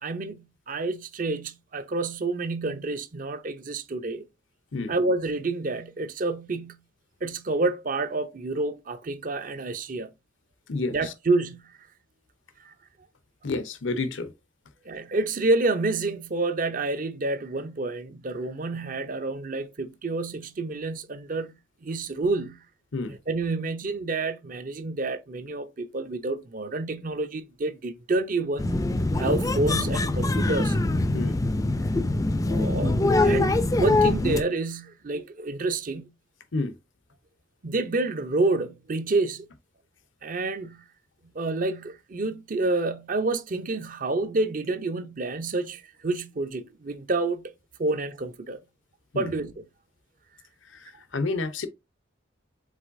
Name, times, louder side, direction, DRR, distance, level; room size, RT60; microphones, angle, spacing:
voice 1, 0.0-4.2 4.9-6.8 7.2-10.1 10.9-11.7 12.6-12.7 14.8-22.6 23.1-28.8 29.2-30.8 32.5-36.1 37.6-39.5 40.2-40.8 41.3-47.5 47.8-48.6 49.1-49.6, right 2 dB, 45° right, 0.6 m, -28 dB
voice 2, 10.7-11.1 13.4-14.3 22.9-23.1 31.1-31.4 36.5-36.8 49.1-49.3 50.7-51.7, left 3 dB, 85° left, 0.8 m, -30 dB
sound 1, 28.6-34.4, left 2 dB, 20° left, 0.4 m, -23 dB
4.9 x 3.9 x 2.6 m
head